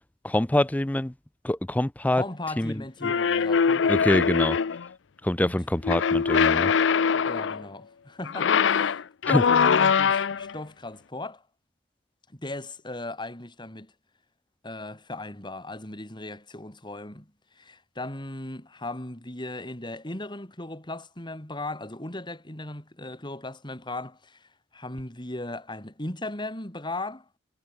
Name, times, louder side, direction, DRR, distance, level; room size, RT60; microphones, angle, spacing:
voice 1, 0.2-1.1 1.4-2.2 2.6-3.1 3.9-4.6 5.2-6.7 9.3-9.4, left 1 dB, 10° left, 0.5 m, -25 dB
voice 2, 2.1-4.3 5.4-5.6 7.3-11.4 12.3-13.9 14.6-17.3 17.6-27.3, left 2 dB, 25° left, 3.8 m, -37 dB
sound 1, 3.0-4.9 5.8-7.6 8.2-10.5, left 6 dB, 85° left, 0.5 m, -22 dB
head